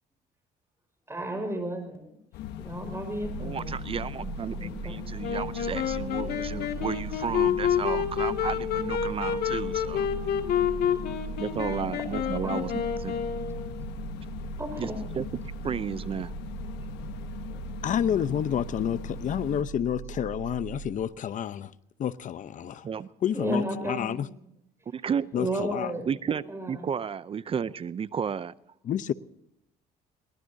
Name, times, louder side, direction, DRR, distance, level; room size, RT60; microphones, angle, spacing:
voice 1, 1.1-2.1 2.6-3.7 4.6-5.2 12.4-12.5 14.6-15.0 17.5-17.6 23.3-24.3 25.3-26.1 26.5-26.8, right 1 dB, 15° right, 5.1 m, -33 dB
sound 1, 2.3-19.6, left 10 dB, 85° left, 1.2 m, -40 dB
sound 2, 3.2-20.9, right 6 dB, 50° right, 2.4 m, -40 dB
voice 2, 3.4-10.1 11.4-13.1 14.8-16.3 22.8-23.1 24.9-25.3 26.1-28.5, right 7 dB, 35° right, 0.5 m, -33 dB
Wind instrument woodwind instrument, 5.2-14.0, left 8 dB, 70° left, 2.2 m, -29 dB
voice 3, 17.8-21.7 22.0-22.9 23.2-24.3 25.3-25.9 28.8-29.1, left 9 dB, 50° left, 0.8 m, -29 dB
22.5 x 19.0 x 2.7 m
cardioid pair, 110°, 17 cm